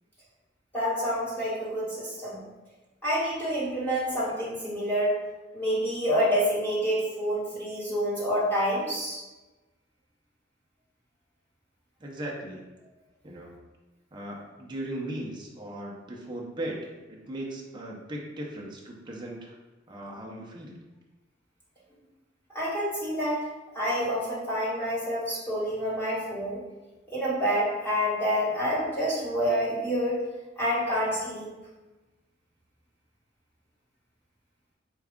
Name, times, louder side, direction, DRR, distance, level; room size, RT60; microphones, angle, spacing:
voice 1, 0.7-2.4 3.0-5.1 5.5-9.2 22.5-23.5 23.7-26.6 27.1-30.2 30.6-31.5, equal, 10° left, -9 dB, 1.3 m, -28 dB
voice 2, 12.0-12.6 13.2-13.6 14.1-19.6 19.9-20.8, right 1 dB, 25° right, -2 dB, 0.6 m, -38 dB
4.6 x 2.4 x 3.5 m, 1.1 s
head